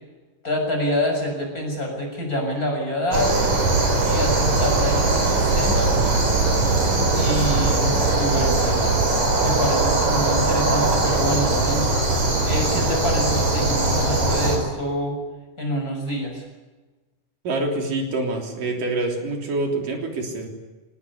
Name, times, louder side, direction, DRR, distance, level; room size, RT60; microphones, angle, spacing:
voice 1, 0.4-3.5 4.0-6.0 7.1-8.9 9.4-11.9 12.4-15.1 15.6-16.4, equal, 25° left, 1 dB, 7.0 m, -26 dB
sound 1, 3.1-14.6, right 2 dB, 60° right, 5.8 m, -20 dB
voice 2, 17.4-20.5, right 2 dB, 80° right, 2 dB, 5.0 m, -26 dB
23.5 x 18.5 x 9.8 m, 1.2 s
omnidirectional pair, 3.8 m